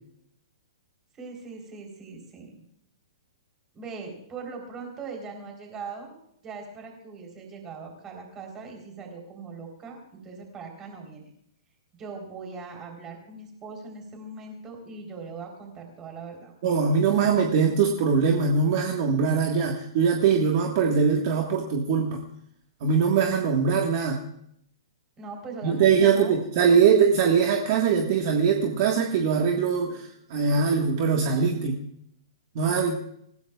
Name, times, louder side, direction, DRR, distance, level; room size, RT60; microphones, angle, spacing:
voice 1, 1.2-2.6 3.7-6.2 6.4-11.2 11.9-16.5 25.2-26.3, right 4 dB, 15° right, 2 dB, 3.9 m, -40 dB
voice 2, 16.6-22.2 22.8-24.2 25.6-31.8 32.5-33.0, right 6 dB, 35° right, 1 dB, 1.7 m, -22 dB
27.5 x 16.0 x 2.4 m, 0.72 s
hypercardioid pair, 170°, 3 cm